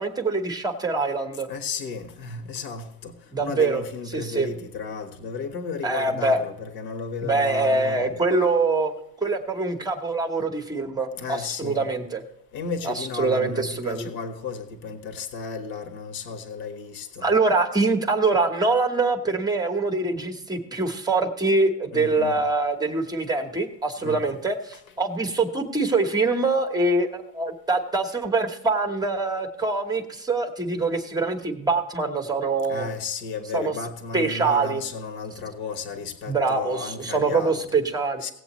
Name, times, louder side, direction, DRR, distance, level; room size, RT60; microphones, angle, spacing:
voice 1, 0.0-1.5 3.3-3.8 4.1-4.5 5.8-6.4 7.2-8.9 9.2-12.2 12.8-14.1 17.2-32.9 33.5-33.7 34.1-34.8 36.3-38.3, right 3 dB, 10° right, 1.1 m, -24 dB
voice 2, 1.5-3.1 3.4-8.2 11.2-11.9 12.5-17.3 21.9-22.4 24.0-24.3 32.7-37.6 38.2-38.3, left 4 dB, 45° left, 1.5 m, -34 dB
18.0 x 7.9 x 3.1 m
supercardioid pair, 145°, 49 cm